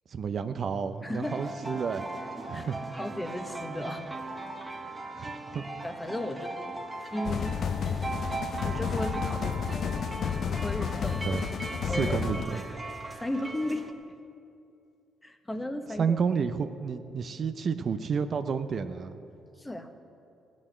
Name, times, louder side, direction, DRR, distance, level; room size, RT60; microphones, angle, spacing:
voice 1, 0.1-2.0 2.5-2.8 5.2-5.6 11.2-11.4 11.8-12.6 16.0-19.1, right 6 dB, 50° right, 9 dB, 0.6 m, -30 dB
voice 2, 1.0-1.4 2.5-2.7 3.0-4.1 5.8-6.8 7.1-7.7 8.6-9.8 10.5-11.2 11.9-12.2 13.1-13.8 15.2-16.2 19.6-19.9, left 1 dB, 15° left, 7 dB, 1.1 m, -35 dB
sound 1, 1.2-13.9, right 2 dB, 15° right, 1.1 m, -38 dB
sound 2, 7.2-12.4, left 7 dB, 55° left, 0.5 m, -31 dB
15.5 x 6.3 x 9.9 m, 2.5 s
cardioid pair, 85°, 0 cm